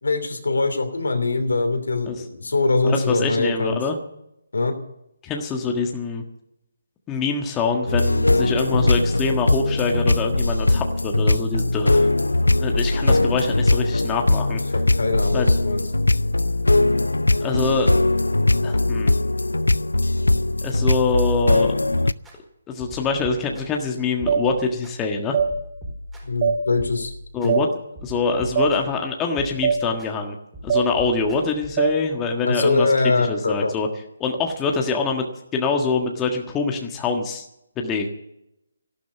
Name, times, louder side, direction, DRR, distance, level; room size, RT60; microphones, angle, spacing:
voice 1, 0.0-3.8 4.5-4.7 14.7-15.8 26.2-27.1 27.4-27.6 32.4-33.7, left 3 dB, 75° left, 7 dB, 2.9 m, -22 dB
voice 2, 2.8-4.0 5.2-6.2 7.1-12.1 12.6-14.6 15.3-15.5 17.4-17.9 18.6-19.1 20.6-21.7 22.7-25.4 27.3-27.7 28.0-30.4 30.6-32.9 33.2-33.9 34.2-35.2 35.5-37.4 37.8-38.1, left 4 dB, 15° left, 2 dB, 1.5 m, -24 dB
sound 1, 7.9-22.1, left 2 dB, 90° left, 0.5 m, -20 dB
sound 2, 21.6-22.4 22.8-23.9 24.2-24.9 25.4-27.5 28.0-29.0 29.4-30.1 30.5-32.0, equal, 5° right, 5.0 m, -38 dB
sound 3, 24.3-24.4 25.3-25.5 26.4-26.6 27.5-27.6 28.6-28.7 29.6-29.8 30.7-30.9 31.8-31.9, right 7 dB, 35° right, 2.7 m, -19 dB
13.5 x 12.0 x 8.1 m, 0.83 s
figure-of-eight pair, 150°, 0 cm